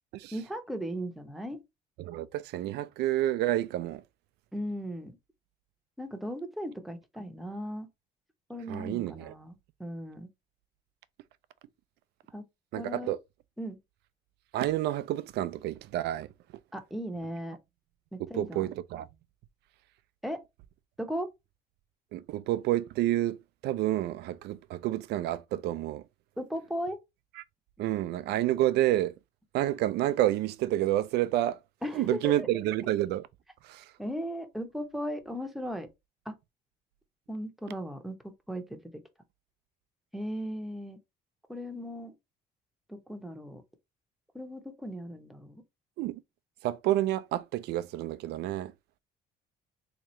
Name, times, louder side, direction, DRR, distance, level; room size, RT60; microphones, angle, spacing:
voice 1, 0.3-1.6 4.5-5.2 6.0-7.9 8.5-10.3 12.3-12.5 12.7-13.1 13.6-13.8 16.7-17.6 18.1-18.7 20.2-20.4 21.0-21.3 26.4-27.0 31.8-32.5 34.0-35.9 36.3-36.4 37.3-39.0 40.1-41.0 41.5-42.1 42.9-43.6 44.3-45.6, equal, ahead, 0.7 m, -37 dB
voice 2, 2.0-4.0 8.7-9.3 12.7-13.2 14.5-16.3 18.3-19.1 22.1-23.4 23.6-26.0 27.4-27.5 27.8-29.1 29.5-31.6 31.9-33.3 33.6-33.8 46.0-46.2 46.6-48.7, right 14 dB, 80° right, 0.4 m, -29 dB
3.5 x 2.9 x 3.0 m
cardioid pair, 110°, 17 cm